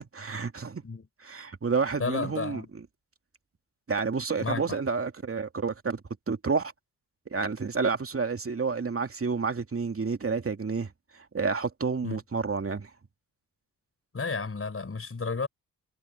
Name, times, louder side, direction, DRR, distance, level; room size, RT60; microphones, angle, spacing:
voice 1, 0.0-0.8 1.2-2.6 3.9-6.0 6.3-6.7 7.3-12.9, right 5 dB, 35° right, 2.7 m, -30 dB
voice 2, 2.0-2.7 4.4-4.8 12.0-12.2 14.1-15.5, left 4 dB, 35° left, 5.0 m, -32 dB
supercardioid pair, 55°, 37 cm